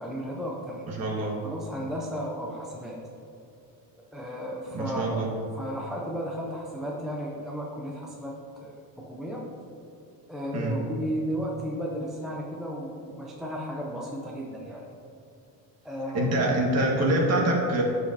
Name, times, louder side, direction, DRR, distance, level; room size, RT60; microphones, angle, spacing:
voice 1, 0.0-1.0 1.4-3.0 4.1-5.3 5.5-8.4 8.6-9.5 10.3-14.9 15.8-16.3, equal, ahead, -3 dB, 0.4 m, -34 dB
voice 2, 0.9-1.4 4.7-5.3 10.5-10.7 16.1-17.8, right 1 dB, 40° right, -1 dB, 1.5 m, -25 dB
13.5 x 5.1 x 2.7 m, 2.7 s
cardioid pair, 160°, 41 cm